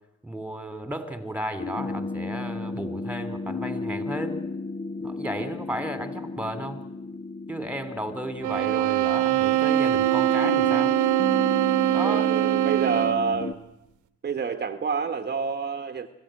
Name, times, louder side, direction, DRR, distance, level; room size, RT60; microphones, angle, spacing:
voice 1, 0.2-4.4 5.0-6.8 7.5-10.9 11.9-12.3, right 1 dB, 5° right, 10 dB, 3.0 m, -33 dB
sound 1, 1.6-13.5, left 3 dB, 35° left, 1.5 m, -34 dB
sound 2, 8.4-13.3, right 16 dB, 80° right, 1.2 m, -23 dB
voice 2, 12.0-13.6 14.2-16.1, right 6 dB, 35° right, 8 dB, 1.3 m, -28 dB
25.0 x 16.0 x 9.0 m, 0.92 s
cardioid pair, 90°, 30 cm